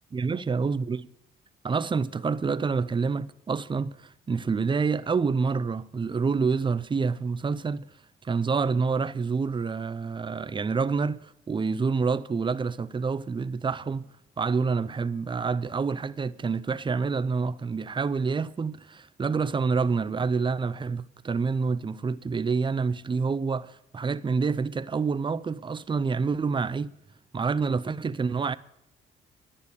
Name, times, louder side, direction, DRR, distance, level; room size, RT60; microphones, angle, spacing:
voice 1, 0.1-1.1 1.6-7.8 8.2-14.1 14.4-26.9 27.3-28.6, right 5 dB, 25° right, 0.6 m, -27 dB
12.0 x 10.0 x 6.8 m
cardioid pair, 90°, 20 cm